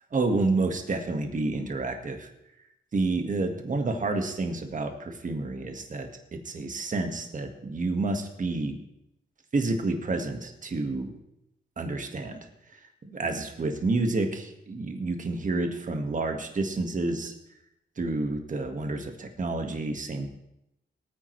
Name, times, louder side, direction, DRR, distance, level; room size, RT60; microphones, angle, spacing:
voice 1, 0.1-2.3 2.9-8.8 9.5-11.1 11.8-17.3 18.0-20.3, right 3 dB, 40° right, 5 dB, 1.7 m, -29 dB
18.0 x 9.5 x 3.3 m, 0.83 s
cardioid pair, 80°, 19 cm